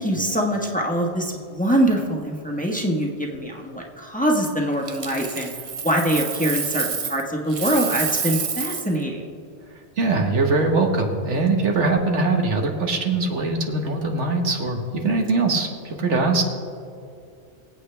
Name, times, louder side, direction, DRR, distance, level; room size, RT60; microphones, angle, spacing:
voice 1, 0.0-5.5 5.8-9.3, right 1 dB, 5° left, -1 dB, 1.3 m, -23 dB
Coin (dropping), 4.9-7.2 7.5-9.0 11.8-12.0, right 6 dB, 40° right, 0.5 m, -28 dB
voice 2, 10.0-16.4, right 3 dB, 85° right, 3 dB, 1.7 m, -22 dB
24.5 x 8.3 x 3.4 m, 2.5 s
omnidirectional pair, 1.2 m